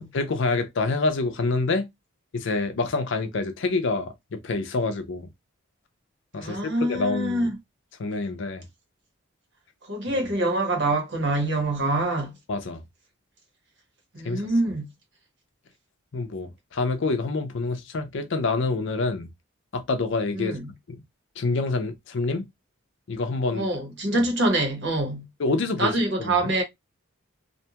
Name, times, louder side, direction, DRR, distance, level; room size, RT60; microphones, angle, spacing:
voice 1, 0.0-1.9 2.3-5.3 6.3-7.5 8.0-8.7 12.5-12.8 14.2-14.4 16.1-19.3 19.7-20.6 20.9-21.0 21.4-22.4 23.1-23.7 24.1-24.2 25.4-25.9 26.2-26.5, left 3 dB, 60° left, 0.5 m, -27 dB
voice 2, 6.4-7.5 9.9-12.3 14.1-14.9 20.3-20.6 23.5-25.3 25.8-26.6, right 2 dB, 60° right, 1.0 m, -25 dB
2.5 x 2.2 x 2.8 m
head